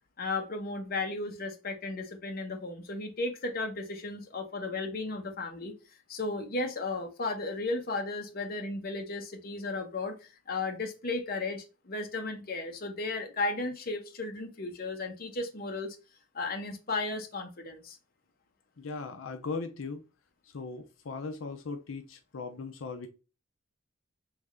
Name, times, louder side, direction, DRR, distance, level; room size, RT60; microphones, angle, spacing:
voice 1, 0.2-5.7 6.1-16.0 16.3-18.0, left 3 dB, 50° left, 3 dB, 0.8 m, -35 dB
voice 2, 18.8-20.0 20.4-23.1, left 4 dB, 85° left, 6 dB, 0.6 m, -38 dB
3.4 x 3.2 x 3.7 m, 0.31 s
head